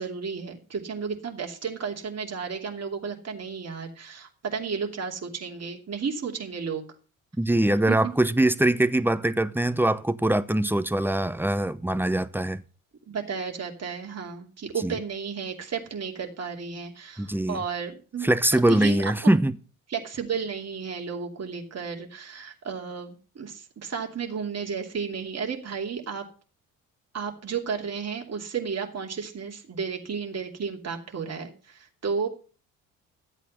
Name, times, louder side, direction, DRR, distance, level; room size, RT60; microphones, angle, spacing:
voice 1, 0.0-6.8 7.9-8.1 13.1-19.0 19.9-26.2 27.1-32.3, right 6 dB, 35° right, 2.8 m, -33 dB
voice 2, 7.4-12.6 14.8-15.0 17.2-17.6 18.2-19.6, right 1 dB, 5° right, 0.8 m, -23 dB
13.0 x 8.3 x 5.4 m
hypercardioid pair, 55°, 42 cm